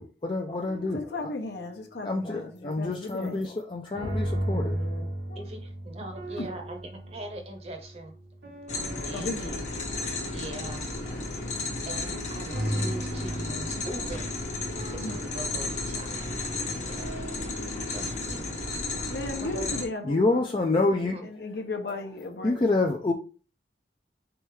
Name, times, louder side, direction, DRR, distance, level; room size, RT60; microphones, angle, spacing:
voice 1, 0.0-1.3 2.0-4.8 20.0-21.1 22.4-23.1, left 2 dB, 25° left, 0.4 m, -27 dB
sound 1, 0.7-1.3 3.9-9.8 12.5-18.1, right 1 dB, 75° right, 1.2 m, -36 dB
voice 2, 0.9-3.5 4.5-5.5 6.4-6.5 9.1-9.6 15.0-15.2 19.1-20.4 21.2-22.6, left 2 dB, 70° left, 0.8 m, -36 dB
voice 3, 5.4-8.1 9.0-9.6 10.3-10.9 11.9-14.4 14.9-17.4 17.9-18.4 19.4-19.8 21.1-21.3, right 1 dB, 35° right, 0.9 m, -41 dB
sound 2, 8.7-19.8, left 2 dB, 45° left, 0.9 m, -33 dB
4.1 x 3.5 x 3.1 m
head